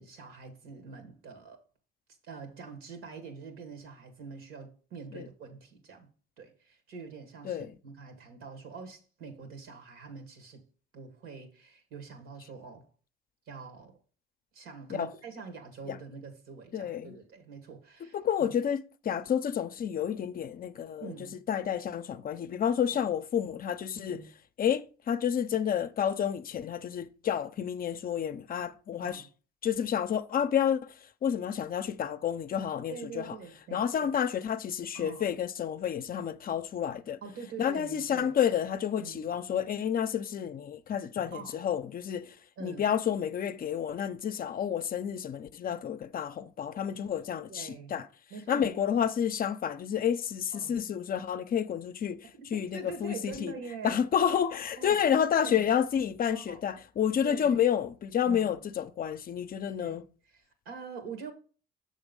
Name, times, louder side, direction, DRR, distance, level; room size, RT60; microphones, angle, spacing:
voice 1, 0.0-1.6 2.2-6.1 6.4-10.6 10.9-12.9 13.5-14.0 14.5-18.5 21.0-21.4 22.9-23.1 23.9-24.3 25.5-25.6 29.0-29.3 32.9-34.1 34.9-35.3 37.2-38.3 39.0-39.3 41.3-41.6 42.6-42.8 47.5-48.0 48.3-49.1 50.5-50.8 52.3-54.0 54.8-55.7 56.3-56.6 57.2-57.6 58.2-58.6 59.7-61.3, right 5 dB, 80° right, 2.0 m, -45 dB
voice 2, 16.7-17.1 18.1-21.1 21.5-24.2 24.6-29.2 29.6-30.9 31.2-33.3 33.7-37.2 37.6-42.3 42.6-48.1 48.5-52.2 52.5-53.5 53.8-60.0, left 8 dB, 45° left, 0.5 m, -30 dB
7.1 x 3.8 x 5.3 m
cardioid pair, 85°, 21 cm